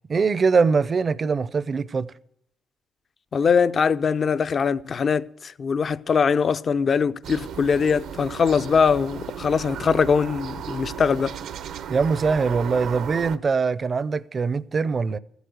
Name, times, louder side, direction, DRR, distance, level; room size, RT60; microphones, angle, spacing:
voice 1, 0.1-2.1 11.9-15.2, right 5 dB, 40° right, 0.5 m, -22 dB
voice 2, 3.3-11.4, left 6 dB, 45° left, 0.5 m, -22 dB
sound 1, 7.2-13.4, right 8 dB, 80° right, 0.7 m, -35 dB
14.5 x 8.1 x 7.9 m
cardioid pair, 90°, 0 cm